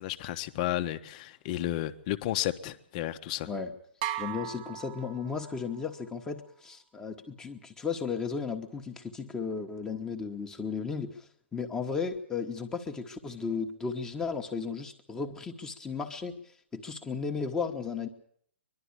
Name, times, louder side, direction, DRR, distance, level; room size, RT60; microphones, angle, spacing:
voice 1, 0.0-3.5, left 14 dB, 40° left, 1.2 m, -32 dB
sound 1, 4.0-5.8, right 11 dB, 40° right, 1.0 m, -37 dB
voice 2, 4.1-16.3 16.7-18.1, left 5 dB, 10° left, 1.4 m, -35 dB
22.0 x 12.0 x 9.9 m
hypercardioid pair, 135°, 6 cm